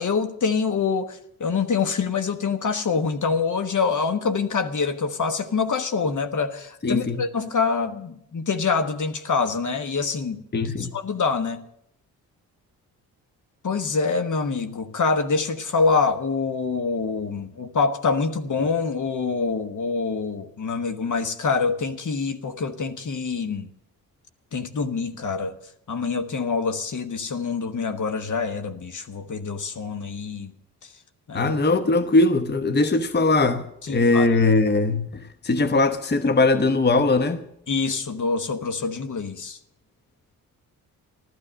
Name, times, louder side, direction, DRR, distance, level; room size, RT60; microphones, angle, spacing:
voice 1, 0.0-10.4 10.8-11.6 13.6-23.7 24.5-25.6 25.9-30.5 31.3-31.6 33.9-34.3 37.7-39.6, left 4 dB, 45° left, 1.4 m, -25 dB
voice 2, 6.8-7.2 10.5-10.9 31.3-37.5, left 3 dB, 25° left, 1.0 m, -20 dB
14.0 x 12.5 x 6.4 m
hypercardioid pair, 45°, 42 cm